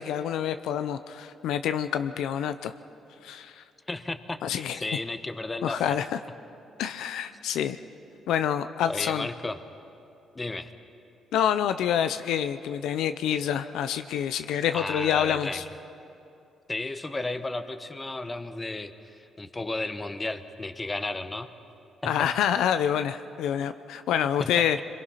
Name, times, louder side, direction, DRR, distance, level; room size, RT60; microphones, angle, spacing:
voice 1, 0.0-2.7 3.2-3.6 4.4-4.8 5.6-6.2 6.8-7.8 8.3-9.3 11.3-15.6 22.0-24.8, left 9 dB, 85° left, 10 dB, 0.6 m, -27 dB
voice 2, 3.9-6.0 8.9-9.6 10.3-10.7 14.7-15.6 16.7-21.5 22.0-22.3 24.4-24.5, left 2 dB, 20° left, 10 dB, 1.1 m, -33 dB
27.5 x 22.0 x 5.7 m, 2.7 s
cardioid pair, 90°, 0 cm